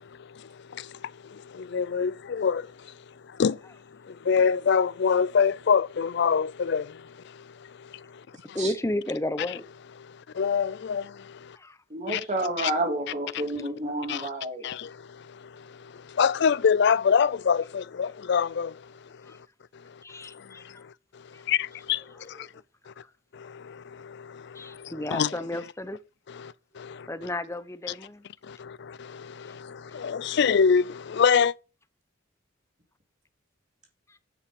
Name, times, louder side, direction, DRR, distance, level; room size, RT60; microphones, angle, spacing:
voice 1, 0.0-8.6 10.0-11.6 12.1-12.2 12.6-12.7 13.3-13.4 14.1-14.3 14.6-19.5 19.7-22.5 22.9-23.0 23.3-25.3 26.3-27.1 28.4-31.5, left 6 dB, 60° left, 0.4 m, -27 dB
voice 2, 8.5-9.7 11.5-11.8 13.1-13.6 19.3-19.4 20.0-20.6 21.3-21.4 22.2-22.5 23.0-23.1 24.5-26.0 27.1-28.3 34.1-34.2, left 1 dB, 15° left, 0.8 m, -33 dB
voice 3, 11.9-14.6, right 1 dB, 40° right, 2.9 m, -30 dB
9.9 x 5.7 x 5.3 m
head